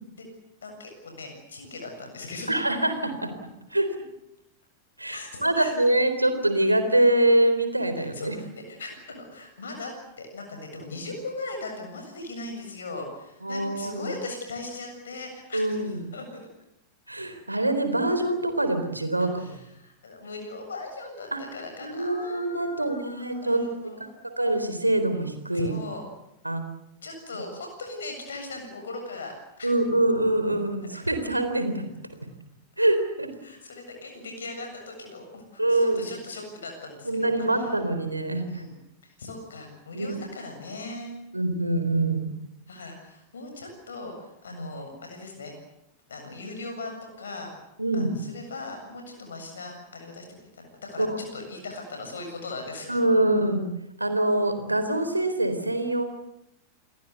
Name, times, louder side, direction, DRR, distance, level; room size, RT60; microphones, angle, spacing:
voice 1, 0.6-2.5 5.1-5.7 8.0-16.4 19.3-24.1 25.5-26.0 27.0-29.7 31.0-31.1 33.4-37.7 38.5-38.7 39.0-41.1 42.7-45.5 46.1-47.5 47.9-53.0, left 2 dB, 70° left, 3 dB, 7.4 m, -39 dB
voice 2, 2.5-3.3 3.7-4.0 5.0-8.4 13.4-14.1 15.5-16.0 17.1-19.3 21.3-21.4 21.8-23.6 24.4-25.7 26.4-26.6 29.6-31.8 32.8-33.3 35.6-36.1 37.0-38.6 39.9-40.2 41.3-42.3 44.5-44.7 47.8-48.2 51.0-51.2 52.9-53.7 54.0-56.0, right 1 dB, 85° right, 8 dB, 3.9 m, -24 dB
28.5 x 22.5 x 8.3 m, 0.83 s
figure-of-eight pair, 90°, 0 cm